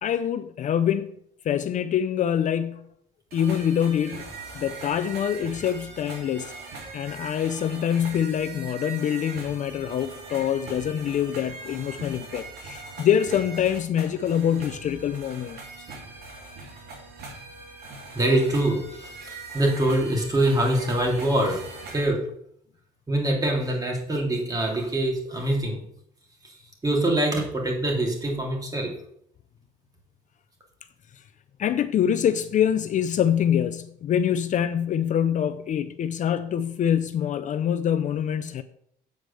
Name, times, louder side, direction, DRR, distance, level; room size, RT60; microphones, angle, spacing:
voice 1, 0.0-1.1 1.4-2.9 3.3-6.5 6.9-15.6 31.6-38.6, left 9 dB, 45° left, 0.5 m, -25 dB
sound 1, 3.3-22.1, right 3 dB, 70° right, 2.6 m, -41 dB
voice 2, 18.1-21.6 21.9-22.2 23.1-25.8 26.4-26.5 26.8-28.9, right 1 dB, 20° right, 2.9 m, -24 dB
7.9 x 4.8 x 6.8 m
cardioid pair, 110°, 17 cm